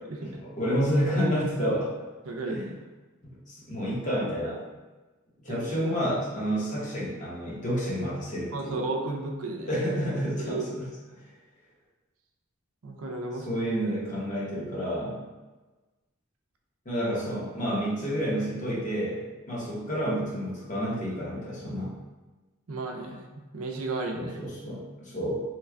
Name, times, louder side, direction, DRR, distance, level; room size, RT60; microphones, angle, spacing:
voice 1, 0.2-1.9 2.5-2.7 3.2-4.6 5.4-8.8 9.7-10.9 13.4-15.2 16.8-21.9 24.1-25.4, equal, 35° left, -6 dB, 1.0 m, -29 dB
voice 2, 2.2-2.6 5.5-5.9 8.5-9.8 10.4-10.7 12.8-13.5 22.7-23.2 23.5-24.4, right 3 dB, 80° right, 2 dB, 0.5 m, -33 dB
3.0 x 2.2 x 3.5 m, 1.2 s
head